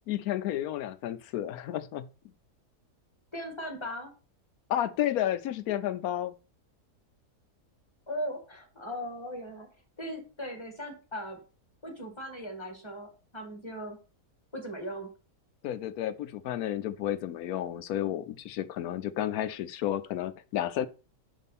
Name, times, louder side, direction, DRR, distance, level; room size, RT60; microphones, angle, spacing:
voice 1, 0.1-2.1 4.7-6.3 15.6-20.9, left 12 dB, 75° left, 1.0 m, -31 dB
voice 2, 3.3-4.1 8.1-9.7 10.0-11.4 11.8-14.0 14.5-15.1, equal, 15° left, 1.7 m, -38 dB
5.7 x 5.4 x 4.2 m
omnidirectional pair, 1.7 m